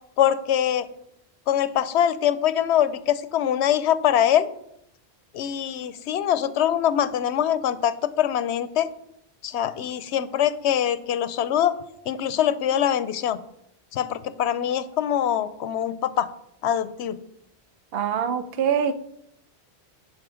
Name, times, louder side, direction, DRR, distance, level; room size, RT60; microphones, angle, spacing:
voice 1, 0.2-0.9 1.5-4.5 5.3-8.9 9.4-11.7 12.1-13.4 13.9-16.3 16.6-17.2, left 10 dB, 85° left, 0.9 m, -23 dB
voice 2, 17.9-18.9, right 7 dB, 65° right, 0.9 m, -24 dB
10.5 x 4.6 x 4.9 m
omnidirectional pair, 1.1 m